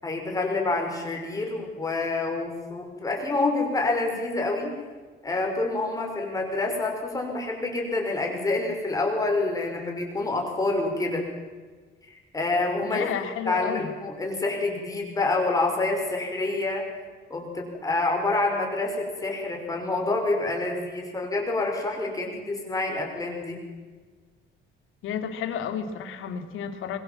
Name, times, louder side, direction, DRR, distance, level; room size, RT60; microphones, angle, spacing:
voice 1, 0.0-4.8 5.2-11.2 12.3-13.1 13.5-16.8 17.3-23.6, left 2 dB, 15° left, 1 dB, 5.8 m, -27 dB
voice 2, 12.8-13.9 25.0-27.0, left 7 dB, 85° left, 8 dB, 2.8 m, -32 dB
25.5 x 22.5 x 7.7 m, 1.4 s
cardioid pair, 155°, 20 cm